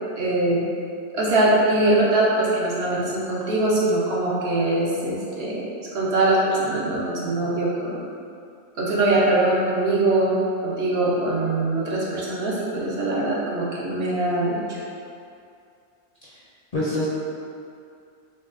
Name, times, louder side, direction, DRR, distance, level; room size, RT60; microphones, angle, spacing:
voice 1, 0.2-0.6 1.1-5.6 5.9-8.0 8.8-10.4 10.6-14.8, right 2 dB, 65° right, -6 dB, 1.0 m, -22 dB
voice 2, 16.7-17.1, left 1 dB, 45° left, -9 dB, 0.5 m, -26 dB
6.1 x 2.2 x 2.5 m, 2.5 s
omnidirectional pair, 1.2 m